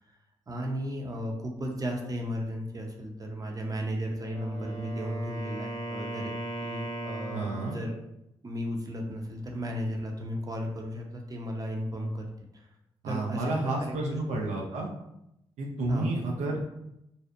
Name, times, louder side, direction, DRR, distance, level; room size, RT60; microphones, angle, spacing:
voice 1, 0.5-6.3 6.6-7.4 7.7-7.9 8.4-12.3 12.5-12.7 13.0-14.2 15.9-16.1, equal, 30° right, 1 dB, 0.6 m, -34 dB
Wind instrument woodwind instrument, 4.1-8.0, right 1 dB, 30° left, 0.8 m, -37 dB
voice 2, 7.3-7.8 13.0-14.9 15.6-16.7, right 2 dB, 80° right, -1 dB, 0.4 m, -31 dB
2.6 x 2.0 x 2.4 m, 0.83 s
supercardioid pair, 40°, 12 cm